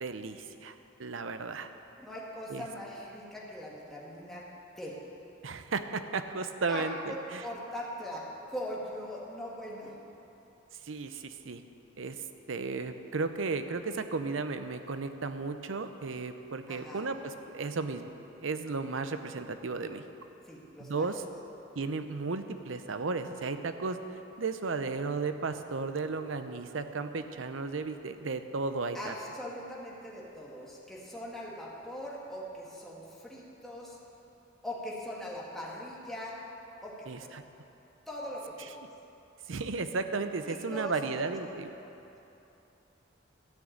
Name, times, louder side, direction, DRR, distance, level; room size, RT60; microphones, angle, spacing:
voice 1, 0.0-0.7 1.0-1.7 2.5-2.7 5.4-7.4 10.9-11.6 12.0-12.2 12.5-18.0 18.4-20.0 20.8-21.2 21.7-24.0 24.4-29.1 37.1-37.4 39.5-41.7, right 4 dB, 80° right, 9 dB, 0.7 m, -34 dB
voice 2, 2.0-4.4 4.8-5.0 6.7-10.0 16.7-17.1 20.5-21.1 28.9-34.0 34.6-36.4 36.8-37.3 38.1-38.7 40.5-41.3 41.8-41.9, equal, ahead, -5 dB, 2.0 m, -41 dB
13.0 x 6.3 x 8.7 m, 2.9 s
head